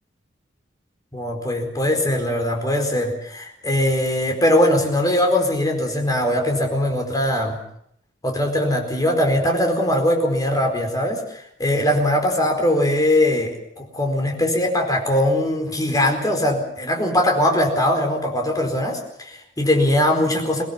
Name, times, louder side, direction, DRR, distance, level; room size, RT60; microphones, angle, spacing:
voice 1, 1.1-7.6 8.2-20.6, left 1 dB, 20° left, 3 dB, 4.5 m, -21 dB
24.0 x 19.0 x 7.3 m, 0.71 s
head